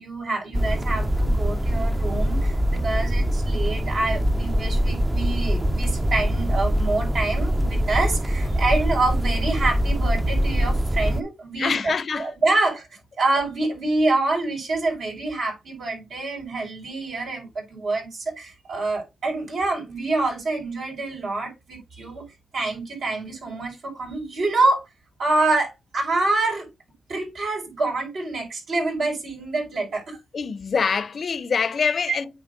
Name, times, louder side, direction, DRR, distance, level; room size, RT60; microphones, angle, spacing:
voice 1, 0.0-12.9 13.2-22.3 22.5-24.8 25.2-26.7 27.1-30.2 32.1-32.2, right 2 dB, 70° right, 4.8 m, -26 dB
sound 1, 0.5-11.2, equal, 15° right, 0.6 m, -23 dB
voice 2, 11.6-12.3 30.3-32.3, left 5 dB, 50° left, 0.6 m, -25 dB
8.8 x 3.4 x 5.1 m
cardioid pair, 100°, 0 cm